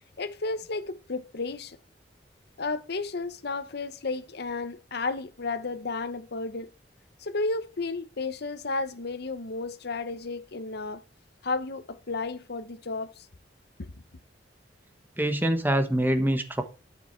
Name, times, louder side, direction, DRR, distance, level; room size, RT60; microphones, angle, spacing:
voice 1, 0.2-1.8 2.6-6.7 7.2-11.0 11.4-13.3 13.8-14.0, left 3 dB, 65° left, 0.8 m, -33 dB
voice 2, 15.2-16.6, right 1 dB, 10° right, 1.2 m, -25 dB
9.5 x 7.9 x 4.5 m
head